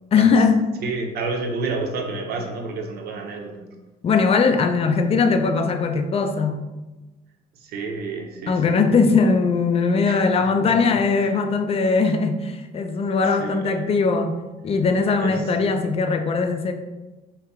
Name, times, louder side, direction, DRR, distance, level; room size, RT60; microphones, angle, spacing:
voice 1, 0.1-0.6 4.0-6.6 8.5-14.3 14.6-16.7, left 4 dB, 35° left, 0.5 m, -20 dB
voice 2, 0.8-3.7 7.5-8.8 10.0-11.4 13.3-13.8 15.2-15.4, right 3 dB, 70° right, 0.8 m, -31 dB
4.3 x 2.8 x 3.5 m
cardioid pair, 110°, 17 cm